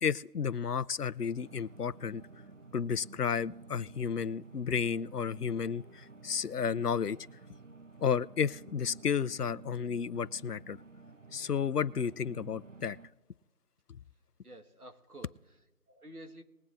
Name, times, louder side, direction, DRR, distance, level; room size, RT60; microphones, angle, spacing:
voice 1, 0.0-2.2 2.7-7.2 8.0-10.8 11.3-13.0, left 6 dB, 85° left, 0.7 m, -32 dB
sound 1, 1.3-13.1, right 3 dB, 55° right, 0.7 m, -52 dB
voice 2, 14.4-16.4, right 1 dB, 70° right, 1.4 m, -51 dB
21.0 x 9.6 x 2.5 m
figure-of-eight pair, 180°, 46 cm